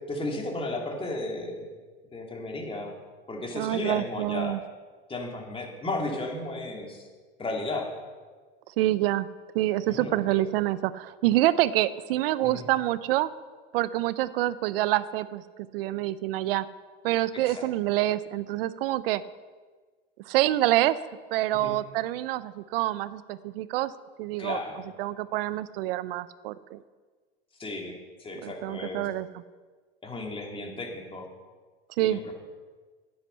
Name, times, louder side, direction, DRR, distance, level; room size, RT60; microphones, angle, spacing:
voice 1, 0.1-1.7 2.1-2.9 3.3-4.6 5.1-7.1 7.4-7.9 9.9-10.4 12.4-12.7 17.3-17.7 21.5-21.7 24.4-24.8 27.6-29.1 30.0-31.3 32.0-32.3, left 2 dB, 20° left, 1 dB, 2.5 m, -34 dB
voice 2, 3.5-4.6 8.8-9.3 9.5-13.3 13.7-15.4 15.7-16.7 17.0-19.2 20.3-21.0 21.3-23.9 24.2-24.6 25.0-26.8 28.4-29.3 32.0-32.2, right 15 dB, 75° right, 16 dB, 0.6 m, -26 dB
11.5 x 9.7 x 5.7 m, 1.4 s
supercardioid pair, 110°, 29 cm